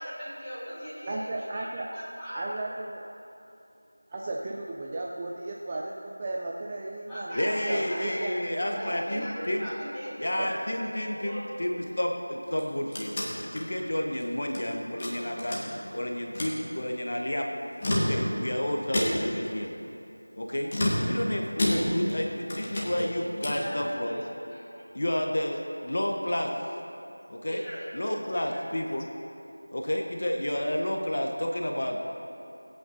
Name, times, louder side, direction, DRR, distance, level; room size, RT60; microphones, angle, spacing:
voice 1, 0.0-2.4 7.1-10.9 11.2-11.4 23.0-23.1 23.5-24.2 24.5-24.8 27.3-27.8 28.5-28.6, equal, ahead, -20 dB, 1.9 m, -39 dB
voice 2, 1.1-1.9 2.3-3.0 4.1-9.3 10.4-10.5, right 2 dB, 20° right, -2 dB, 0.4 m, -35 dB
voice 3, 7.3-9.7 10.2-15.6 15.9-17.5 17.9-19.7 20.4-20.7 21.0-24.2 24.9-26.5 27.3-27.6 27.9-29.1 29.7-32.0, left 1 dB, 45° left, 2 dB, 0.9 m, -30 dB
sound 1, 12.5-14.6 15.0-16.0 16.3-16.6 17.6-18.5 18.9-19.4 20.7-22.2 22.5-23.7, left 1 dB, 25° left, 1.5 m, -30 dB
22.5 x 8.6 x 2.7 m, 2.7 s
figure-of-eight pair, 175°, 0 cm